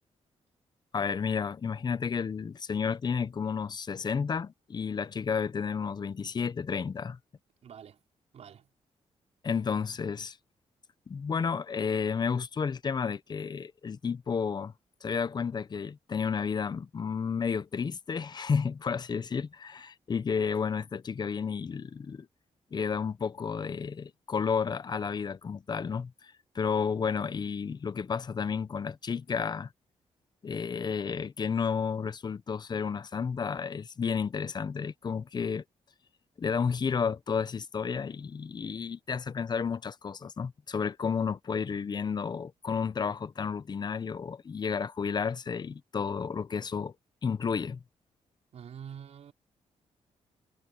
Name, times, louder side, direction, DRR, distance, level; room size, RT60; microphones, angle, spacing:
voice 1, 0.9-7.2 9.4-10.4 11.1-14.7 15.0-22.3 22.7-29.7 30.4-35.6 36.4-46.9 47.2-47.8, left 6 dB, 40° left, 0.7 m, -32 dB
voice 2, 7.6-8.0 8.3-8.7 48.5-49.3, right 8 dB, 70° right, 4.6 m, -46 dB
cardioid pair, 105°, 12 cm